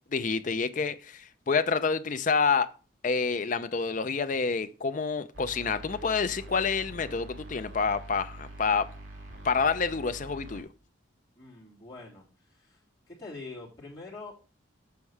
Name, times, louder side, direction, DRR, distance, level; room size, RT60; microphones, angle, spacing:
voice 1, 0.1-2.7 3.0-8.9 9.4-10.7, left 5 dB, 40° left, 0.5 m, -28 dB
sound 1, 5.3-10.6, right 1 dB, 70° right, 2.0 m, -45 dB
voice 2, 11.4-12.8 13.1-14.3, left 3 dB, 15° left, 3.0 m, -44 dB
7.1 x 4.4 x 4.7 m
head